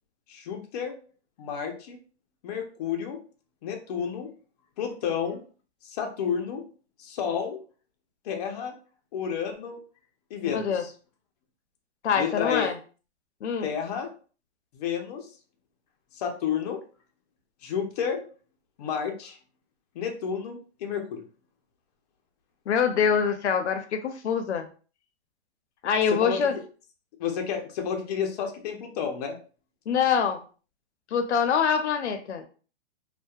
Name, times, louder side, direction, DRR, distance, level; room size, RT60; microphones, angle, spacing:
voice 1, 0.3-0.9 1.4-2.0 2.4-3.2 3.6-4.3 4.8-5.4 5.8-6.6 7.0-7.6 8.2-8.7 9.1-9.8 10.3-10.9 12.1-12.7 13.6-14.1 14.7-15.3 16.1-16.8 17.6-18.2 18.8-19.4 19.9-21.2 26.1-26.6 27.2-29.4, left 7 dB, 35° left, 3 dB, 0.5 m, -31 dB
voice 2, 10.4-10.8 12.0-12.8 13.4-13.7 22.7-24.7 25.8-26.5 29.9-30.4 31.1-32.4, left 7 dB, 90° left, 7 dB, 0.6 m, -25 dB
2.6 x 2.2 x 2.3 m, 0.38 s
hypercardioid pair, 150°, 33 cm